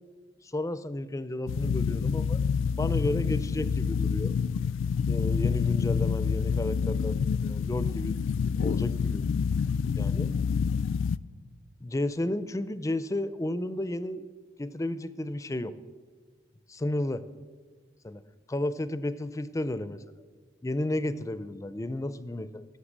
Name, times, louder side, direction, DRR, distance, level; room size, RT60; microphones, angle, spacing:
voice 1, 0.4-2.4 2.8-4.3 5.1-7.2 7.4-8.2 8.6-9.2 10.0-10.3 11.8-14.2 14.6-15.7 16.7-17.2 18.0-18.2 18.5-20.0 20.6-22.6, left 1 dB, 15° left, 14 dB, 0.4 m, -32 dB
sound 1, 1.5-11.2, left 6 dB, 90° left, 0.4 m, -27 dB
15.0 x 6.6 x 7.3 m, 1.5 s
head